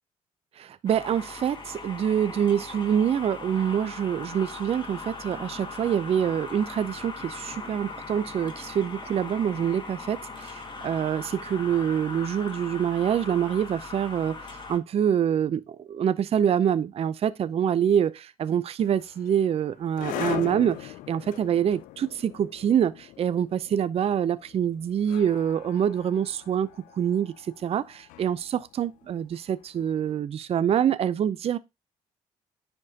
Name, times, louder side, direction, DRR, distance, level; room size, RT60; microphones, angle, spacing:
voice 1, 0.6-31.6, right 9 dB, 50° right, 0.5 m, -26 dB
sound 1, 0.9-14.8, left 3 dB, 35° left, 1.8 m, -40 dB
sound 2, 18.8-29.9, left 15 dB, 85° left, 0.4 m, -40 dB
9.8 x 4.4 x 2.8 m
supercardioid pair, 70°, 13 cm